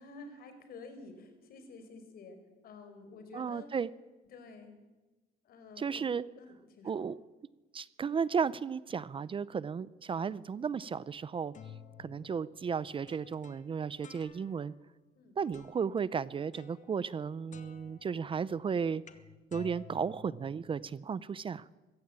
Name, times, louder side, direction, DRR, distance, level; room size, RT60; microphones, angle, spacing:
voice 1, 0.0-2.4 2.6-3.7 4.3-4.7 5.4-6.1 6.4-7.1 15.1-15.4, left 3 dB, 65° left, 8 dB, 5.0 m, -50 dB
voice 2, 3.3-3.9 5.8-6.2 6.8-7.2 7.7-11.5 12.0-14.7 15.4-19.0 19.5-21.6, right 6 dB, 30° right, 18 dB, 0.6 m, -34 dB
sound 1, 11.2-14.8 15.5-16.0 16.5-17.2 17.5-21.0, left 6 dB, 45° left, 1.8 m, -54 dB
23.0 x 15.5 x 9.0 m, 1.2 s
cardioid pair, 110°, 17 cm